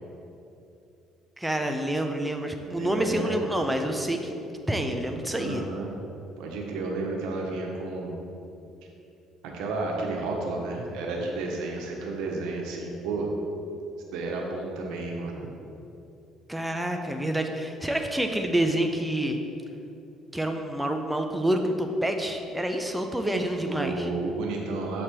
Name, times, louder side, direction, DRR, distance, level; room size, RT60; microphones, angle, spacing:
voice 1, 1.4-4.3 4.7-5.6 16.5-19.4 20.3-24.1, right 1 dB, 5° right, 4 dB, 0.4 m, -28 dB
voice 2, 2.7-3.3 5.3-5.9 6.4-8.2 9.4-13.3 14.1-15.4 23.7-25.0, right 3 dB, 85° right, 0 dB, 1.0 m, -32 dB
7.1 x 3.3 x 4.4 m, 2.7 s
cardioid pair, 110°, 0 cm